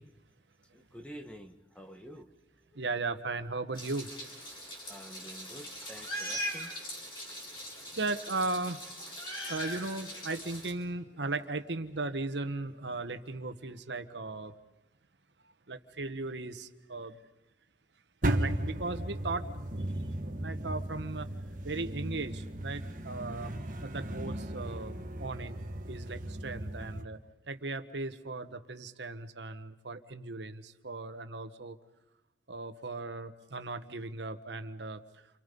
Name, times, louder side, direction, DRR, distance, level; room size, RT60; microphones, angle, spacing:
voice 1, 0.7-2.3 4.9-6.7, equal, 5° left, 6 dB, 1.4 m, -48 dB
voice 2, 2.7-4.1 7.9-9.1 9.5-14.5 15.7-17.2 18.2-19.4 19.8-21.3 21.6-23.5 23.8-25.6 25.9-27.2 27.5-31.8 32.5-35.0, right 3 dB, 80° right, 9 dB, 1.3 m, -37 dB
Meow, 3.8-10.7, equal, 25° left, 5.8 m, -41 dB
sound 1, 18.2-27.0, right 1 dB, 45° right, 1.6 m, -36 dB
30.0 x 27.0 x 5.4 m, 0.91 s
head